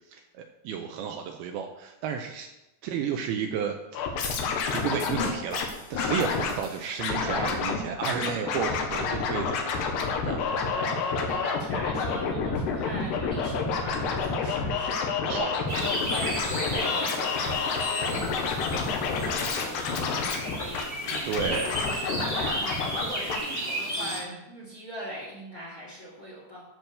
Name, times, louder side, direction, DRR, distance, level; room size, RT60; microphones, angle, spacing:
voice 1, 0.1-2.5 2.8-4.0 4.7-9.9 10.2-10.4 15.3-15.5 21.2-21.7, right 7 dB, 80° right, 4 dB, 2.4 m, -32 dB
Scratching (performance technique), 3.9-5.7 5.9-6.5 7.0-7.8 8.0-23.0 23.3-23.4, left 5 dB, 80° left, 3.3 m, -29 dB
sound 1, 4.2-7.3, left 4 dB, 55° left, 1.9 m, -39 dB
voice 2, 7.2-7.5 10.7-14.9 15.2-26.6, equal, 25° left, -3 dB, 2.3 m, -40 dB
sound 2, 15.7-24.2, right 1 dB, 15° right, 1.6 m, -34 dB
12.5 x 4.6 x 6.7 m, 0.95 s
omnidirectional pair, 4.9 m